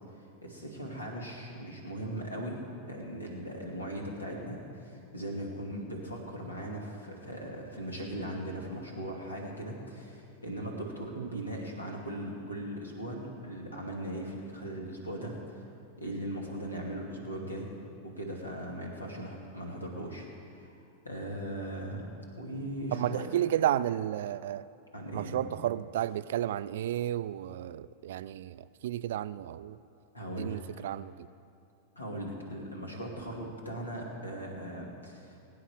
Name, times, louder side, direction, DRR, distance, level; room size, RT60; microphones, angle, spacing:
voice 1, 0.1-15.6 16.0-17.8 18.0-20.7 21.0-22.1 22.4-23.3 24.9-25.4 30.1-30.6 32.0-35.4, right 1 dB, 80° left, 0 dB, 2.6 m, -39 dB
voice 2, 22.9-24.7 25.1-29.8 30.4-31.3, right 12 dB, 55° right, 16 dB, 0.3 m, -32 dB
22.0 x 9.6 x 4.9 m, 2.6 s
figure-of-eight pair, 90°, 0 cm